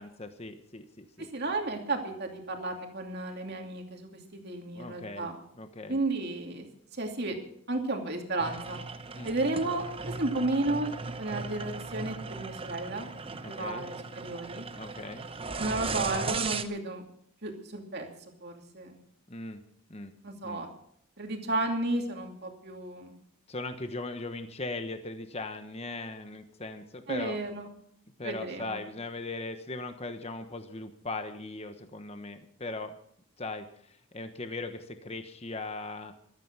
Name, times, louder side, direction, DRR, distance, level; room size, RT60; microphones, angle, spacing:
voice 1, 0.0-1.3 4.7-6.0 9.1-9.4 13.4-13.9 14.8-15.3 19.3-19.6 19.9-20.1 20.4-20.6 23.5-27.4 28.2-32.9 33.4-36.1, left 2 dB, 30° left, 8 dB, 1.2 m, -39 dB
voice 2, 1.2-5.4 5.9-6.7 6.9-7.4 7.7-8.8 9.2-14.0 14.2-14.6 15.6-17.0 17.4-18.1 18.4-19.0 20.2-20.7 21.2-23.1 27.1-27.7 28.2-28.8, right 2 dB, 45° right, 3 dB, 2.6 m, -33 dB
sound 1, 8.4-16.6, right 4 dB, 25° right, 0.8 m, -37 dB
14.5 x 13.0 x 6.1 m, 0.69 s
head